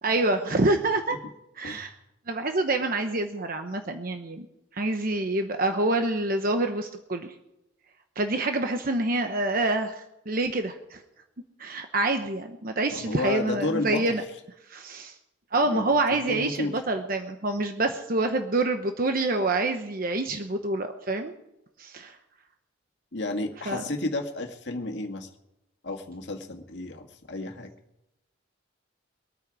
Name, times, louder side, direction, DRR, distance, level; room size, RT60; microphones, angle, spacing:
voice 1, 0.0-1.2 1.6-1.9 2.3-4.5 4.7-7.3 8.2-11.0 11.6-14.2 14.7-15.1 15.5-21.3 21.8-22.1 23.7-23.8, right 2 dB, 50° right, 6 dB, 1.0 m, -27 dB
voice 2, 12.9-14.2 15.6-16.8 23.1-25.3 25.8-27.7, left 2 dB, 65° left, 4 dB, 1.9 m, -32 dB
23.5 x 9.2 x 4.9 m, 0.88 s
head